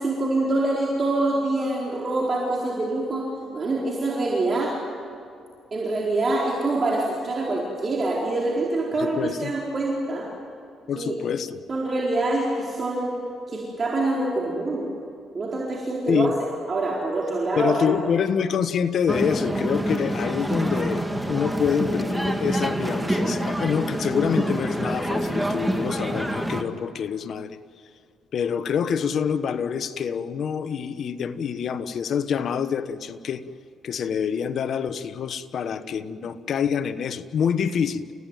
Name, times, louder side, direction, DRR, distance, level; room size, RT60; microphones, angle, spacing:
voice 1, 0.0-3.3 3.5-4.7 5.7-10.3 10.9-11.1 11.7-13.2 13.5-14.9 15.3-16.3 16.7-17.9, right 2 dB, 40° right, -3 dB, 4.5 m, -25 dB
voice 2, 8.9-9.5 10.9-11.6 16.1-16.3 17.6-27.6 28.3-33.4 33.8-38.0, left 7 dB, 60° left, 12 dB, 1.2 m, -26 dB
sound 1, 19.1-26.6, right 1 dB, 5° right, 2.1 m, -26 dB
29.5 x 16.5 x 9.2 m, 2.5 s
cardioid pair, 90°, 0 cm